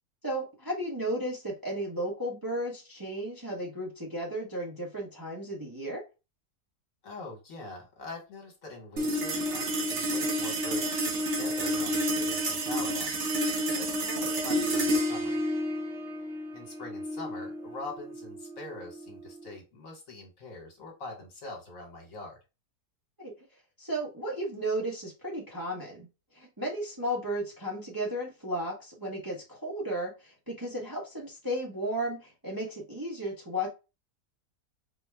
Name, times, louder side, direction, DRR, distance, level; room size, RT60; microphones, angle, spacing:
voice 1, 0.2-6.0 23.2-23.3 23.8-26.1 26.3-33.7, right 1 dB, 15° right, -3 dB, 0.9 m, -34 dB
voice 2, 7.0-13.3 13.7-15.4 16.5-22.4, left 2 dB, 55° left, 1 dB, 1.6 m, -43 dB
sound 1, 9.0-19.6, equal, 55° right, 1.0 m, -30 dB
4.3 x 2.2 x 3.4 m, 0.27 s
omnidirectional pair, 1.7 m